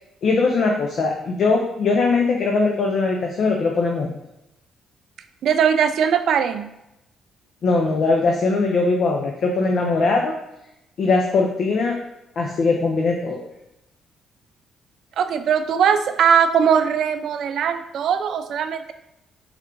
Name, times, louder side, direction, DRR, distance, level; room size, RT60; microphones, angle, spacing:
voice 1, 0.2-4.1 7.6-10.3 11.0-12.0 12.4-13.4, left 3 dB, 60° left, 0 dB, 0.5 m, -20 dB
voice 2, 5.4-6.7 15.2-18.9, right 7 dB, 70° right, 10 dB, 0.3 m, -20 dB
3.5 x 2.4 x 4.4 m, 0.87 s
cardioid pair, 90°, 0 cm